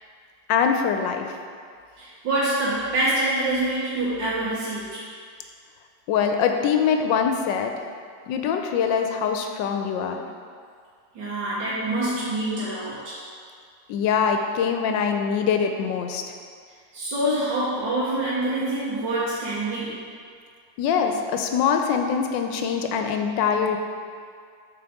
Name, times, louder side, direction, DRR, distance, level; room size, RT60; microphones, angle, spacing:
voice 1, 0.5-1.3 6.1-7.7 8.3-10.2 13.9-16.2 20.8-23.8, left 7 dB, 85° left, 4 dB, 1.3 m, -23 dB
voice 2, 2.0-5.0 11.2-13.2 14.8-14.9 16.9-20.0, right 1 dB, 80° right, -9 dB, 1.8 m, -26 dB
7.7 x 4.1 x 3.5 m, 2.2 s
omnidirectional pair, 1.9 m